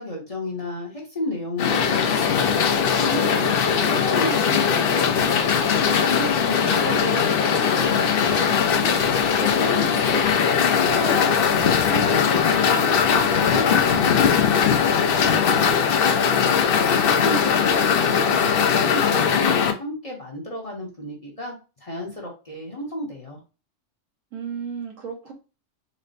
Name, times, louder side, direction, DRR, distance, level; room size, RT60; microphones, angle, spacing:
voice 1, 0.0-2.6 2.9-5.4 6.0-15.8 16.7-23.4, left 2 dB, 30° left, -2 dB, 0.9 m, -33 dB
sound 1, 1.6-19.7, left 7 dB, 60° left, 0.6 m, -20 dB
voice 2, 6.2-7.1 24.3-25.3, right 6 dB, 75° right, 1 dB, 1.5 m, -34 dB
4.1 x 2.1 x 3.9 m, 0.32 s
omnidirectional pair, 1.4 m